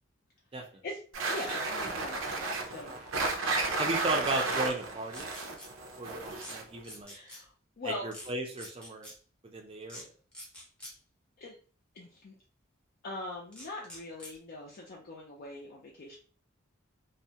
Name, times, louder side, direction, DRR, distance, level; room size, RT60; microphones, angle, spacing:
voice 1, 0.8-3.0 3.9-4.0 7.1-8.1 11.4-11.6 11.9-12.4 13.0-16.2, left 2 dB, 50° left, -2 dB, 0.4 m, -42 dB
sound 1, 1.1-6.8, right 3 dB, 85° right, 0.5 m, -33 dB
voice 2, 3.8-5.3 6.0-7.1 7.8-9.1 9.4-10.1, right 2 dB, 30° right, 2 dB, 0.4 m, -35 dB
sound 2, 5.1-5.7 6.3-6.5 6.8-7.4 8.1-8.3 8.6-9.1 9.9-10.0 10.3-10.9 13.5-14.4, left 1 dB, 5° left, 0.7 m, -46 dB
2.3 x 2.1 x 2.7 m, 0.40 s
head